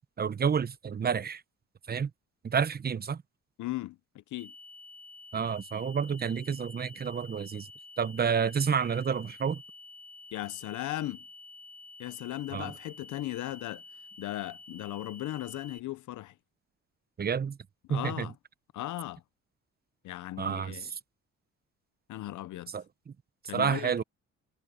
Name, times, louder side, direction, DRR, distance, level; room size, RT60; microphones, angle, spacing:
voice 1, 0.2-1.4 1.9-2.1 2.4-3.2 5.3-7.7 8.0-9.6 12.5-12.7 17.2-17.6 17.9-18.3 20.4-21.0 22.7-23.1 23.5-24.0, right 7 dB, 30° right, 0.9 m, -30 dB
voice 2, 3.6-4.5 10.3-11.2 12.0-13.8 14.2-16.3 17.9-18.3 18.7-19.2 20.0-20.8 22.1-22.7 23.5-24.0, left 15 dB, 75° left, 0.8 m, -37 dB
sound 1, 4.4-15.8, left 3 dB, 5° left, 1.0 m, -50 dB
cardioid pair, 90°, 30 cm